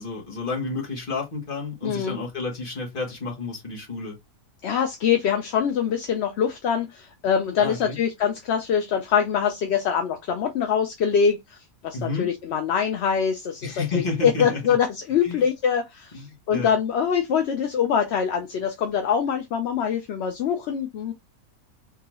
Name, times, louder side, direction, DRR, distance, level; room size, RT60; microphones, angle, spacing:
voice 1, 0.0-4.2 7.6-8.0 11.9-12.3 13.6-14.6 15.2-15.4 16.1-16.7, left 3 dB, 40° left, 1.5 m, -30 dB
voice 2, 1.8-2.2 4.6-11.6 11.8-21.1, left 7 dB, 60° left, 0.8 m, -24 dB
3.8 x 2.8 x 2.9 m
omnidirectional pair, 1.5 m